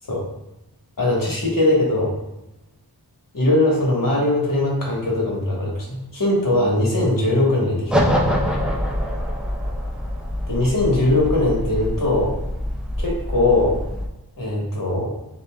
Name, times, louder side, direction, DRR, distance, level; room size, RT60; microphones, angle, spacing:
voice 1, 1.0-2.1 3.3-8.0 10.5-12.4 13.0-13.7 14.4-15.1, left 2 dB, 55° left, -3 dB, 1.3 m, -20 dB
sound 1, 7.9-14.1, equal, ahead, 0.6 m, -25 dB
6.7 x 2.6 x 2.3 m, 0.97 s
wide cardioid pair, 85°, 39 cm